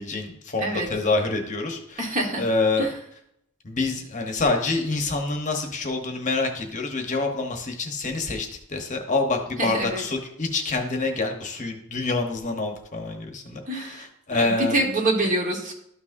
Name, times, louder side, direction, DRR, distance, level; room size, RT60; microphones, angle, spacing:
voice 1, 0.0-2.1 2.4-2.9 3.6-14.8, left 3 dB, 35° left, 3 dB, 1.0 m, -27 dB
voice 2, 2.0-2.4 2.8-2.9 9.6-10.0 13.7-14.1 14.4-15.7, right 1 dB, 35° right, 1 dB, 1.4 m, -25 dB
12.5 x 6.0 x 2.6 m, 0.75 s
head